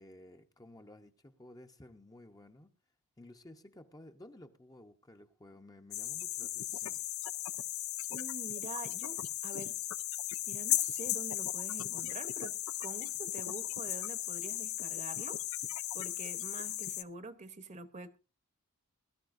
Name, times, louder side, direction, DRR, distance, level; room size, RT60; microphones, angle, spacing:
voice 1, 0.0-2.7 3.2-7.0, left 1 dB, 15° left, 0.8 m, -55 dB
sound 1, 5.9-17.0, left 14 dB, 65° left, 0.6 m, -36 dB
voice 2, 8.1-9.8 10.5-15.4 15.9-18.2, right 3 dB, 35° right, 1.0 m, -46 dB
21.0 x 12.5 x 2.6 m
head